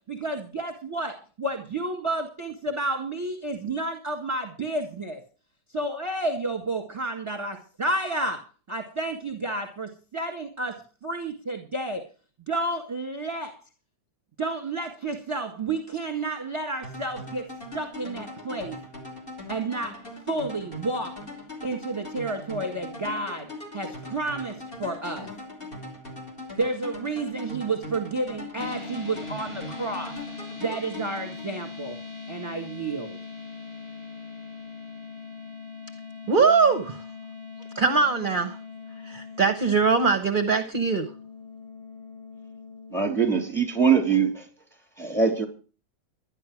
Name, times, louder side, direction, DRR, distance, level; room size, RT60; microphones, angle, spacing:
voice 1, 0.0-5.2 5.7-12.0 12.5-13.6 14.4-17.5 17.7-18.8 19.5-21.3 21.6-25.3 26.6-30.2 30.6-32.0 32.3-33.2, right 2 dB, 15° right, 1.8 m, -31 dB
sound 1, 16.8-31.9, left 2 dB, 30° left, 3.6 m, -40 dB
sound 2, 28.6-44.1, left 5 dB, 45° left, 3.1 m, -41 dB
voice 2, 36.3-37.0 37.7-38.6 39.0-41.1, right 4 dB, 35° right, 1.1 m, -22 dB
voice 3, 42.9-44.5 45.0-45.5, right 6 dB, ahead, 3.3 m, -22 dB
12.0 x 11.5 x 6.1 m
omnidirectional pair, 1.9 m